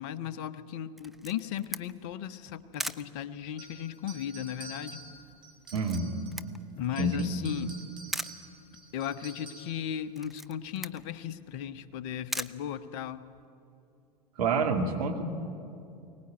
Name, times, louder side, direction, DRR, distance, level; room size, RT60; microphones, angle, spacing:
voice 1, 0.0-5.0 6.8-7.8 8.9-13.2, left 9 dB, 45° left, 14 dB, 1.1 m, -36 dB
Camera, 1.0-13.5, right 1 dB, ahead, 0.5 m, -43 dB
sound 1, 3.6-6.5 6.8-9.8, right 3 dB, 20° right, 4.1 m, -49 dB
voice 2, 5.7-6.1 7.0-7.3 14.4-15.2, right 3 dB, 60° right, 3 dB, 2.5 m, -28 dB
23.0 x 19.0 x 9.0 m, 2.6 s
figure-of-eight pair, 85°, 21 cm